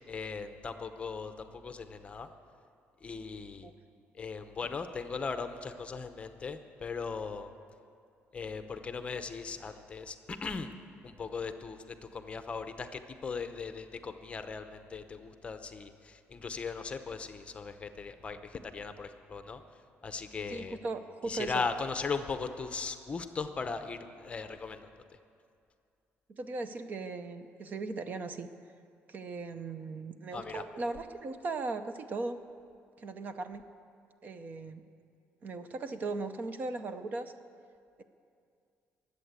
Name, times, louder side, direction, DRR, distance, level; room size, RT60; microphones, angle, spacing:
voice 1, 0.0-2.3 3.0-3.7 4.2-7.5 8.3-10.7 11.0-19.6 20.0-20.8 21.3-24.9 30.3-30.6, left 5 dB, 25° left, 9 dB, 0.7 m, -38 dB
voice 2, 20.5-21.6 26.3-28.5 29.1-32.4 33.0-33.7 34.2-34.8 35.4-37.3, right 3 dB, 40° right, 10 dB, 0.7 m, -38 dB
21.5 x 8.3 x 8.1 m, 2.4 s
cardioid pair, 160°, 5 cm